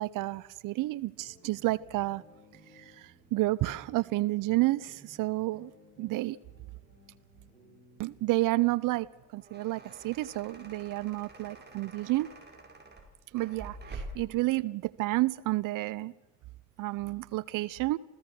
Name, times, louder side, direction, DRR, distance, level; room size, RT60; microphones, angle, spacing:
voice 1, 0.0-2.2 2.7-5.7 6.0-6.4 8.0-9.1 9.3-12.3 13.3-16.1 16.8-18.0, right 19 dB, 50° right, 19 dB, 0.7 m, -30 dB
sound 1, 1.2-8.8, equal, 90° right, 4.5 m, -59 dB
sound 2, 9.2-14.4, right 2 dB, 25° right, 5.4 m, -47 dB
28.0 x 16.0 x 6.1 m, 1.2 s
figure-of-eight pair, 50°, 41 cm